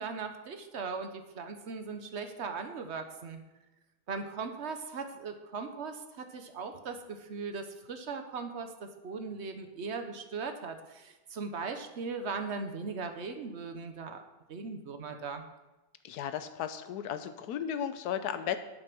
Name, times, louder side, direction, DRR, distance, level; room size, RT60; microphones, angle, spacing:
voice 1, 0.0-3.4 4.1-14.2 14.5-15.4, right 4 dB, 50° right, 7 dB, 1.2 m, -39 dB
voice 2, 16.0-18.6, left 9 dB, 80° left, 10 dB, 1.3 m, -35 dB
8.7 x 7.7 x 6.1 m, 1.1 s
omnidirectional pair, 1.6 m